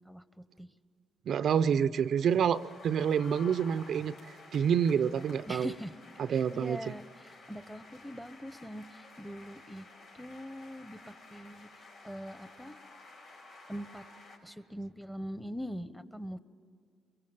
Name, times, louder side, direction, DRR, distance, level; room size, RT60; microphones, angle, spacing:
voice 1, 0.1-0.7 5.5-5.9 6.3-9.9 10.1-11.7 12.0-12.8 13.7-14.0 14.4-16.4, equal, ahead, 13 dB, 1.0 m, -42 dB
voice 2, 1.3-4.1 4.5-5.7 6.2-6.8, right 7 dB, 65° right, 13 dB, 0.5 m, -28 dB
sound 1, 1.9-14.4, left 3 dB, 80° left, 5.8 m, -53 dB
23.0 x 22.5 x 7.3 m, 2.3 s
cardioid pair, 90°, 0 cm